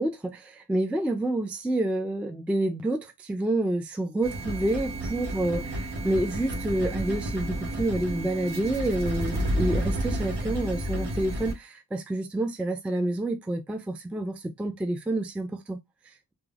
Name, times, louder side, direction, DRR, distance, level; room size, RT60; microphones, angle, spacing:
voice 1, 0.0-15.8, right 1 dB, 5° right, 0.3 m, -28 dB
sound 1, 4.2-11.5, right 1 dB, 80° right, 0.8 m, -31 dB
2.3 x 2.1 x 3.3 m
cardioid pair, 60°, 40 cm